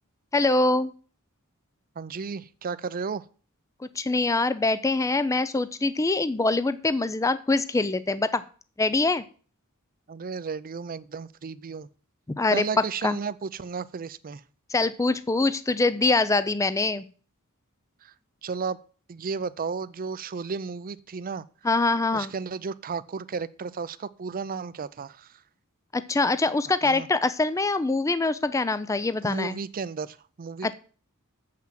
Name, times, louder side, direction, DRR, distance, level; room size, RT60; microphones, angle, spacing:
voice 1, 0.3-0.9 4.0-8.4 8.8-9.2 12.4-12.6 13.0-13.2 14.7-17.0 21.6-22.3 25.9-29.5 30.6-30.7, left 3 dB, 15° left, 14 dB, 0.4 m, -24 dB
voice 2, 2.0-3.3 10.1-11.9 12.5-14.4 18.0-18.1 18.4-18.8 19.1-21.4 22.1-25.4 26.8-27.1 29.2-30.7, right 5 dB, 40° right, 15 dB, 0.5 m, -33 dB
7.5 x 5.8 x 7.4 m, 0.41 s
head